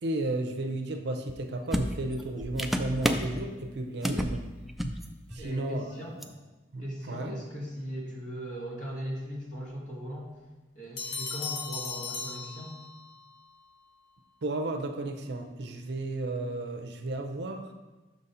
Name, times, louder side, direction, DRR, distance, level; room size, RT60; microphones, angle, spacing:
voice 1, 0.0-4.5 5.3-5.9 6.7-7.4 14.4-17.7, right 2 dB, 65° right, 5 dB, 0.6 m, -33 dB
sound 1, 1.3-1.4 1.7-3.4 4.0-4.4 4.7-5.0 5.3-5.5 6.2-6.3, equal, ahead, 0.3 m, -30 dB
voice 2, 5.4-6.2 6.8-10.3 10.7-12.8, equal, 45° left, -4 dB, 1.7 m, -38 dB
sound 2, 11.0-13.2, left 5 dB, 65° left, 1.1 m, -37 dB
6.3 x 4.0 x 5.5 m, 1.2 s
head